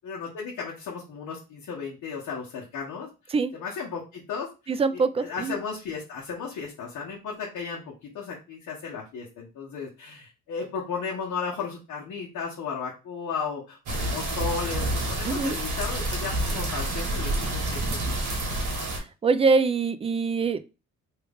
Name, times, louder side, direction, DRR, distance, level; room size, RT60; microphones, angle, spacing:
voice 1, 0.0-4.5 4.9-18.3, left 5 dB, 75° left, -4 dB, 1.0 m, -35 dB
voice 2, 4.7-5.6 15.2-15.6 18.9-20.7, right 4 dB, 20° right, 12 dB, 0.3 m, -24 dB
sound 1, 13.9-19.0, right 1 dB, 70° right, 1.4 m, -28 dB
3.1 x 2.4 x 3.4 m, 0.30 s
cardioid pair, 90°, 30 cm